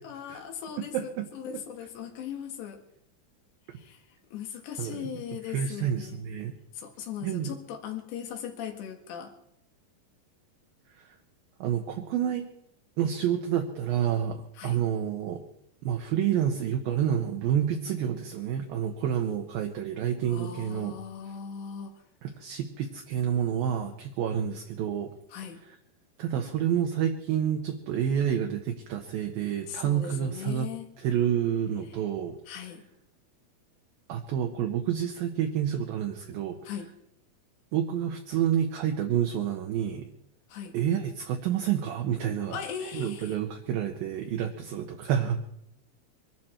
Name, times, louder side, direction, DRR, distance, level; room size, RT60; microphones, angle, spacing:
voice 1, 0.0-2.8 3.7-6.2 6.7-9.4 14.6-14.8 20.3-22.0 25.3-25.6 29.6-30.9 31.9-32.0 32.5-32.8 36.6-36.9 40.5-40.8 42.5-43.4, left 8 dB, 80° left, 5 dB, 4.0 m, -39 dB
voice 2, 0.9-1.3 4.8-5.1 5.5-6.5 7.2-7.5 11.6-12.5 13.0-15.4 15.8-20.9 22.2-25.1 26.2-30.7 31.0-32.4 34.1-36.6 37.7-40.1 40.7-42.6 42.9-45.4, right 9 dB, 70° right, 4 dB, 2.5 m, -29 dB
24.0 x 12.5 x 4.4 m, 0.74 s
omnidirectional pair, 4.9 m